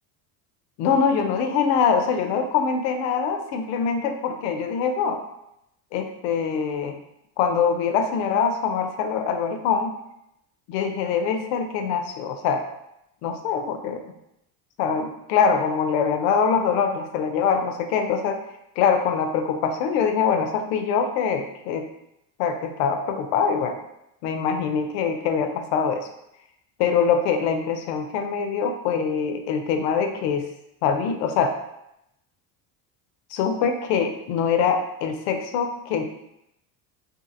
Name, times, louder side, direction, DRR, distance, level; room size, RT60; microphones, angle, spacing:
voice 1, 0.8-5.2 5.9-7.0 7.4-9.9 10.7-12.6 13.2-14.2 14.8-18.4 18.8-21.9 22.4-23.8 24.2-26.1 26.8-30.5 30.8-31.6 33.3-36.0, left 6 dB, 80° left, 6 dB, 0.6 m, -23 dB
2.7 x 2.5 x 2.5 m, 0.82 s
supercardioid pair, 90°, 49 cm